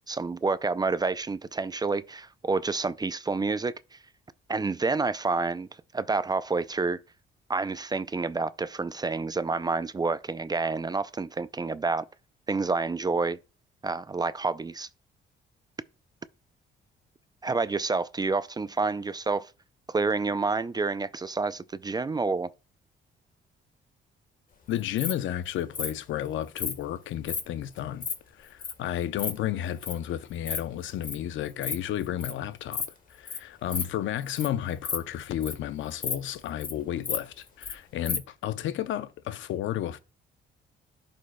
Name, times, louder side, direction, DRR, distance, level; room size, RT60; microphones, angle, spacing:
voice 1, 0.1-4.0 4.5-5.7 5.9-7.0 7.5-12.1 12.5-13.4 13.8-14.9 17.4-19.5 19.9-22.5, right 4 dB, 20° right, 0.3 m, -28 dB
voice 2, 24.7-28.1 28.4-32.8 33.1-40.0, left 11 dB, 75° left, 0.6 m, -32 dB
Insect, 24.7-25.1 25.7-25.9 26.6-26.8 27.2-27.4 27.8-28.1 28.6-28.7 29.0-29.3 29.8-30.0 30.3-30.6 30.8-31.1 31.5-31.7 32.0-32.3 32.7-32.9 33.3-33.4 33.7-33.8 34.2-34.5 34.8-35.7 36.0-36.1 36.4-36.7 37.0-37.7 38.0-38.2, left 5 dB, 45° left, 1.4 m, -32 dB
11.0 x 5.2 x 2.2 m
cardioid pair, 90°, 20 cm